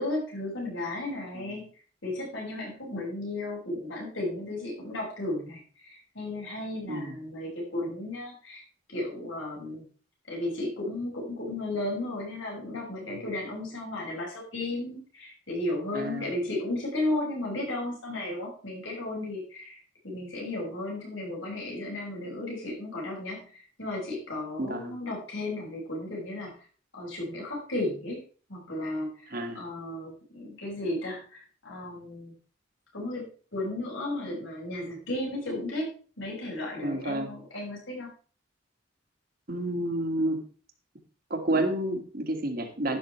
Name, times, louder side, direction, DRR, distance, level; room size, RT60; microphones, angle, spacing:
voice 1, 0.0-1.7 2.0-8.6 8.9-9.8 10.3-26.7 26.9-28.2 28.5-32.3 32.9-35.9 36.2-38.1, left 1 dB, 85° left, -3 dB, 5.9 m, -34 dB
voice 2, 15.9-16.3 24.6-25.0 29.3-29.6 36.8-37.3 39.5-40.4 41.3-43.0, right 1 dB, 50° right, 4 dB, 1.9 m, -30 dB
12.0 x 10.5 x 3.2 m, 0.39 s
head